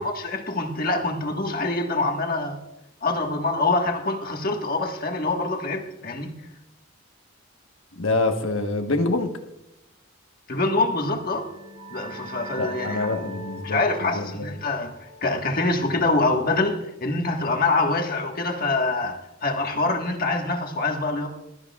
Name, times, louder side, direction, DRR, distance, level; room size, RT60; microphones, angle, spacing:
voice 1, 0.0-2.6 3.0-6.3 10.5-11.5 11.9-13.1 13.6-14.9 15.2-21.3, left 2 dB, 45° left, 1.5 m, -25 dB
voice 2, 8.0-9.4 12.6-14.5, left 2 dB, 75° left, 1.2 m, -26 dB
sound 1, 11.2-16.5, right 1 dB, 80° right, 1.5 m, -41 dB
21.5 x 13.0 x 2.4 m
head